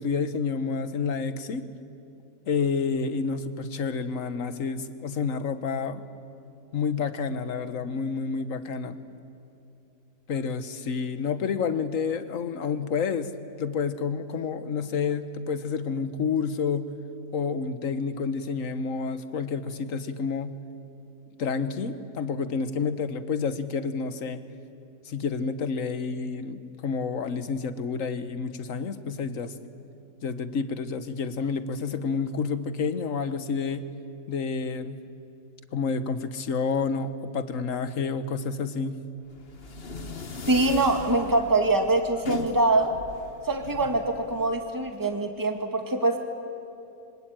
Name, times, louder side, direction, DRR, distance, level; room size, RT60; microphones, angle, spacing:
voice 1, 0.0-1.7 2.5-6.0 6.7-9.0 10.3-13.3 13.6-16.8 17.3-20.5 21.4-24.4 25.1-29.5 30.2-33.8 34.3-35.0 35.7-39.0, left 5 dB, 55° left, 11 dB, 1.5 m, -29 dB
sound 1, 39.3-45.1, left 2 dB, 40° left, 1.4 m, -39 dB
voice 2, 40.5-42.9 43.5-46.2, right 2 dB, 10° right, 4 dB, 1.8 m, -24 dB
27.0 x 24.0 x 9.0 m, 2.7 s
omnidirectional pair, 1.7 m